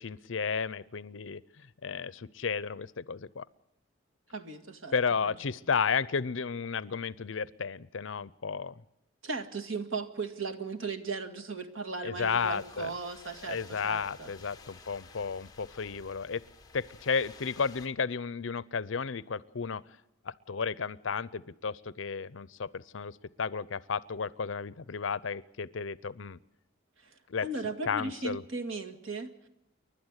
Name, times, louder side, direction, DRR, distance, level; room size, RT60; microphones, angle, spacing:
voice 1, 0.0-1.4 1.8-3.4 4.9-8.7 12.0-12.9 13.5-16.4 16.7-19.8 20.2-26.4 27.3-27.5 27.9-28.4, left 5 dB, 70° left, 20 dB, 0.6 m, -33 dB
voice 2, 4.3-4.9 5.2-5.4 9.2-14.3 27.0-29.5, right 4 dB, 85° right, 6 dB, 1.9 m, -37 dB
sound 1, 12.1-17.9, left 4 dB, 20° left, 1.7 m, -53 dB
29.5 x 12.0 x 8.1 m, 0.88 s
head